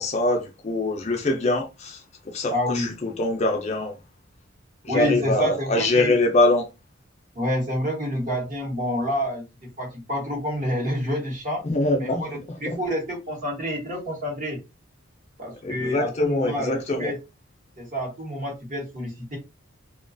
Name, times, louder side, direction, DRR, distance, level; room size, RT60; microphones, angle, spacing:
voice 1, 0.0-3.9 4.8-6.7 11.6-12.8 15.6-17.1, left 2 dB, 30° left, 0.4 m, -24 dB
voice 2, 2.5-2.9 4.9-6.1 7.3-9.4 9.8-11.6 12.0-14.6 15.4-17.1 17.8-19.4, equal, 40° right, 1.0 m, -28 dB
2.4 x 2.2 x 2.5 m
head